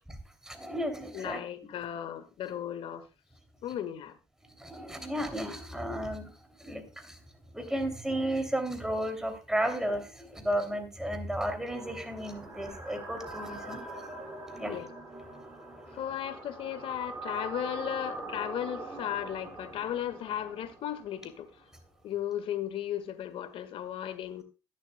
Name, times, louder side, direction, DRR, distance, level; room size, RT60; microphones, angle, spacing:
voice 1, 0.4-1.4 4.6-6.3 6.6-7.2 7.5-14.8, right 1 dB, 5° right, 6 dB, 3.0 m, -33 dB
voice 2, 1.1-3.1 3.6-4.2 14.7-14.9 15.9-21.5 22.0-24.4, left 10 dB, 60° left, 10 dB, 1.7 m, -35 dB
sound 1, 11.6-21.7, right 2 dB, 25° right, 5.3 m, -43 dB
22.0 x 7.5 x 2.3 m, 0.31 s
hypercardioid pair, 55°, 11 cm